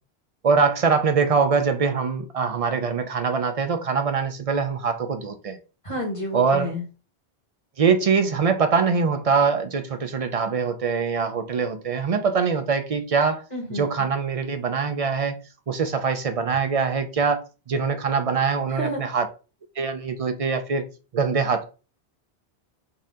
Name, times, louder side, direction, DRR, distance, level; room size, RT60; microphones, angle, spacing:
voice 1, 0.4-5.6 6.3-6.7 7.8-13.4 13.7-15.3 15.7-17.4 17.7-19.3 19.8-20.8 21.1-21.6, right 5 dB, 50° right, 0.4 m, -23 dB
voice 2, 5.8-6.8 13.5-14.1 18.8-19.0, equal, 30° left, 1.5 m, -30 dB
4.1 x 2.7 x 3.6 m
omnidirectional pair, 1.1 m